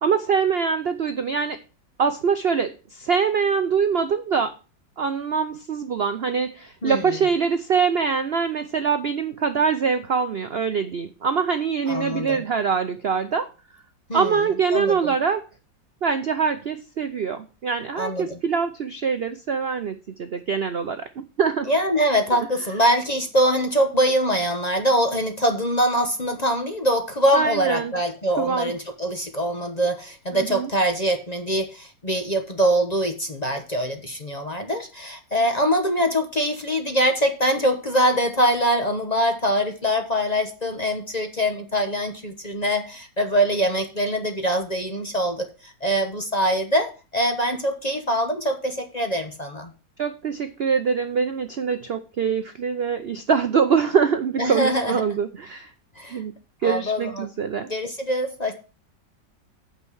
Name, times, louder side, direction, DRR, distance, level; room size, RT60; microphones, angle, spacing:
voice 1, 0.0-1.6 2.0-4.5 5.0-13.5 14.1-15.4 16.0-21.7 27.3-27.9 28.4-28.7 30.3-30.7 50.0-55.7 56.1-56.3 56.6-57.7, right 6 dB, 75° right, 8 dB, 0.5 m, -24 dB
voice 2, 6.8-7.2 11.9-12.4 14.1-14.4 14.7-15.0 18.0-18.4 21.7-49.7 54.4-55.0 56.0-56.2 56.6-57.3 57.7-58.5, equal, 30° left, 5 dB, 0.9 m, -23 dB
9.0 x 5.8 x 6.2 m, 0.33 s
omnidirectional pair, 2.0 m